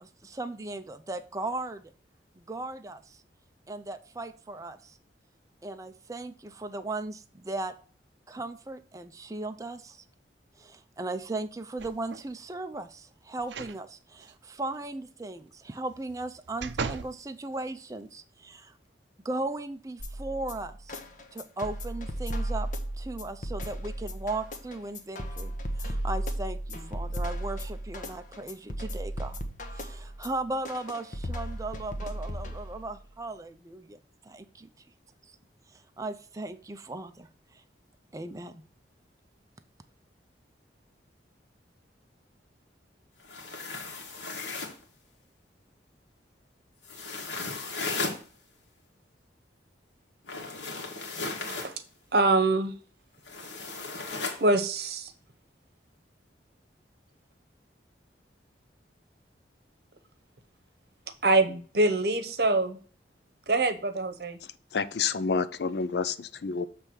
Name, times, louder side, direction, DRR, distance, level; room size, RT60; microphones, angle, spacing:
voice 1, 0.0-1.8 2.4-3.2 3.7-5.0 5.6-7.7 8.3-10.0 10.6-18.7 19.2-21.0 21.3-22.7 23.0-29.4 29.7-34.0 34.2-34.7 35.7-37.6 38.1-38.6, right 2 dB, 20° right, 0.4 m, -37 dB
sound 1, 11.8-12.3 13.4-13.8 14.2-14.3 15.9-17.2 17.7-17.8, right 5 dB, 75° right, 0.5 m, -37 dB
sound 2, 20.0-33.0, right 1 dB, 45° left, 0.9 m, -35 dB
sound 3, 43.2-44.8 46.8-48.2 50.2-51.7 53.3-54.4, left 3 dB, 80° left, 1.8 m, -35 dB
voice 2, 52.1-52.7 54.4-55.1 61.2-62.8 63.5-64.4, right 2 dB, 55° right, 0.9 m, -24 dB
voice 3, 64.7-66.7, left 5 dB, 65° left, 0.5 m, -29 dB
7.3 x 3.4 x 6.1 m
head